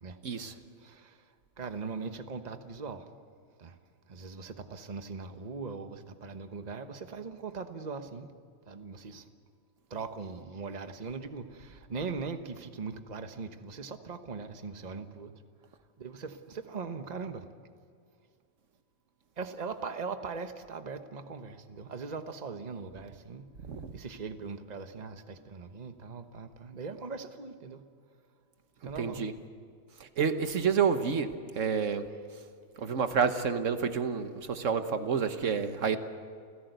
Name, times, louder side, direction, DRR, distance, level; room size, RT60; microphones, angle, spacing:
voice 1, 0.2-0.5 23.7-23.9 29.0-29.3 30.0-32.0 32.8-36.0, right 6 dB, 85° right, 9 dB, 1.5 m, -29 dB
voice 2, 0.8-1.3 1.6-3.1 3.6-3.8 4.1-8.3 8.7-9.3 9.9-15.3 16.0-17.5 19.4-23.5 23.9-27.8 28.8-29.3, right 4 dB, 35° right, 8 dB, 1.2 m, -40 dB
29.5 x 16.0 x 8.1 m, 2.3 s
omnidirectional pair, 1.3 m